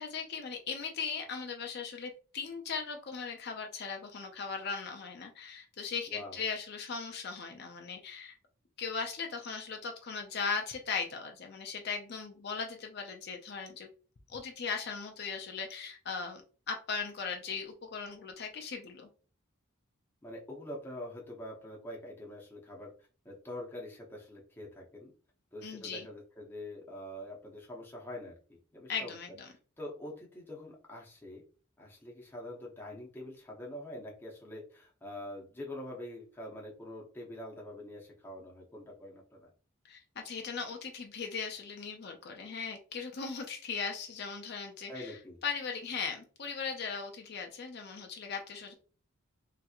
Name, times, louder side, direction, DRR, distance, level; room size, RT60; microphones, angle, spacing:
voice 1, 0.0-8.3 8.8-13.9 14.3-16.4 16.7-19.1 25.6-26.1 28.9-29.5 39.8-45.2 45.4-48.7, left 5 dB, 50° left, 4 dB, 0.4 m, -38 dB
voice 2, 6.1-6.4 20.2-22.9 23.2-25.1 25.5-29.2 29.8-31.4 31.8-39.5 44.9-45.4, left 1 dB, 10° left, -3 dB, 0.7 m, -45 dB
3.2 x 2.9 x 2.3 m, 0.38 s
head